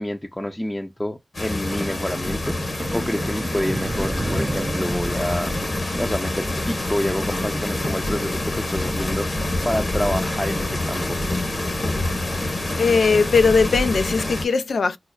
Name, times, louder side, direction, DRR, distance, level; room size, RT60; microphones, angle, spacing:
voice 1, 0.0-11.2, left 1 dB, 15° left, 0.5 m, -28 dB
sound 1, 1.3-14.5, left 1 dB, 60° left, 1.2 m, -26 dB
sound 2, 2.8-6.3, right 2 dB, 40° right, 0.4 m, -31 dB
voice 2, 12.8-15.0, left 4 dB, 85° left, 0.3 m, -19 dB
5.7 x 2.1 x 2.2 m
cardioid pair, 40°, 0 cm